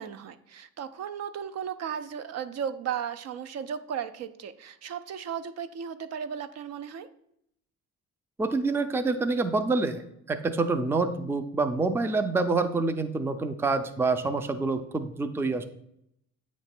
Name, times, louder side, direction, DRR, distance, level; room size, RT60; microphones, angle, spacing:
voice 1, 0.0-7.1, right 8 dB, 55° right, 12 dB, 0.5 m, -35 dB
voice 2, 8.4-10.0 10.3-15.6, right 3 dB, 10° right, 10 dB, 0.4 m, -27 dB
8.1 x 3.1 x 5.9 m, 0.75 s
cardioid pair, 120°, 30 cm